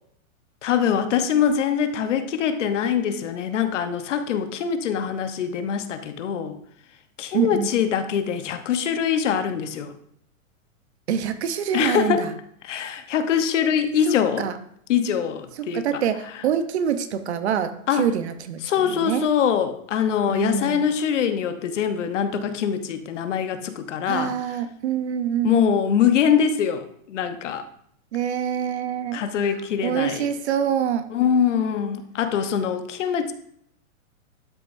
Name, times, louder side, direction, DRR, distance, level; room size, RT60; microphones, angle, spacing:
voice 1, 0.6-6.6 7.2-9.9 11.7-12.3 12.6-14.5 14.9-15.8 17.9-18.1 18.6-24.3 25.4-27.6 29.1-30.3 31.1-33.3, left 8 dB, 60° left, 9 dB, 1.0 m, -23 dB
voice 2, 7.3-7.7 11.1-12.3 14.1-14.6 15.6-19.3 20.3-20.8 24.1-25.8 28.1-29.2 29.8-31.1, right 8 dB, 50° right, 10 dB, 0.9 m, -25 dB
12.0 x 6.4 x 2.7 m, 0.70 s
hypercardioid pair, 170°, 42 cm